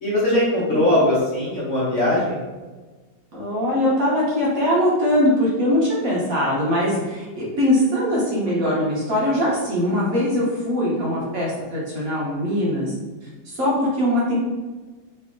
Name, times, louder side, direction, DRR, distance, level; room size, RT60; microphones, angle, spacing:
voice 1, 0.0-2.4, left 1 dB, 45° left, -7 dB, 1.3 m, -20 dB
voice 2, 3.3-12.9 13.5-14.3, left 1 dB, 55° right, -6 dB, 1.4 m, -21 dB
3.5 x 3.2 x 3.6 m, 1.3 s
omnidirectional pair, 1.9 m